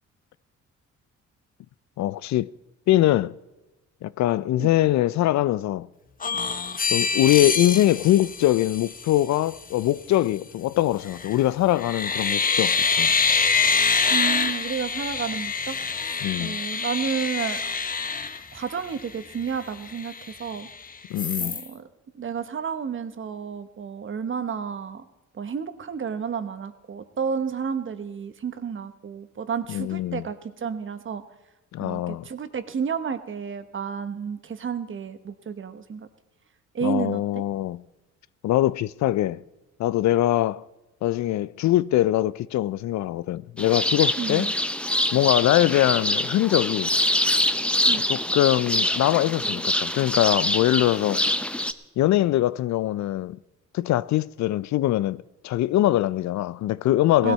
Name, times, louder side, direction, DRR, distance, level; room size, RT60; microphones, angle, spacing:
voice 1, 2.0-2.5 2.9-3.3 4.0-5.9 6.9-13.1 16.2-16.6 21.1-21.6 29.7-30.2 31.7-32.3 36.8-37.8 38.4-39.4 39.8-40.6 41.0-44.5 45.1-46.9 47.3-47.4 48.1-51.2 52.0-53.4 53.7-57.3, left 14 dB, 65° left, 0.4 m, -22 dB
sound 1, 6.2-9.2 11.0-11.4 11.8-19.0 19.5-19.6 19.9-20.7 21.2-21.7, left 5 dB, 30° left, 0.9 m, -25 dB
voice 2, 14.1-17.8 18.3-20.1 20.4-20.7 21.4-21.9 22.1-25.1 25.3-31.2 31.8-36.1 36.7-37.4 44.2-44.5 47.8-48.0 57.2-57.3, right 6 dB, 40° right, 1.1 m, -31 dB
sound 2, 43.6-51.7, left 1 dB, 5° left, 0.7 m, -25 dB
17.5 x 12.5 x 4.3 m
cardioid pair, 90°, 30 cm